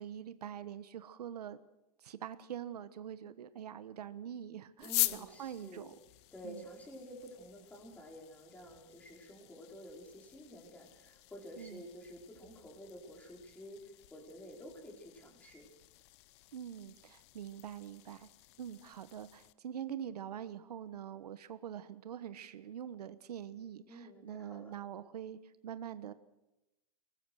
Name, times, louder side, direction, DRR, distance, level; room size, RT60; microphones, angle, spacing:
voice 1, 0.0-1.6 2.0-5.9 6.4-6.6 11.6-11.8 16.5-18.3 18.6-26.1, right 9 dB, 90° right, 13 dB, 1.3 m, -44 dB
sound 1, 4.8-19.5, left 19 dB, 45° left, 0.8 m, -44 dB
voice 2, 4.8-5.9 6.3-15.7 23.9-24.8, equal, 5° left, 1 dB, 4.9 m, -51 dB
23.5 x 20.0 x 6.5 m, 0.96 s
supercardioid pair, 150°, 20 cm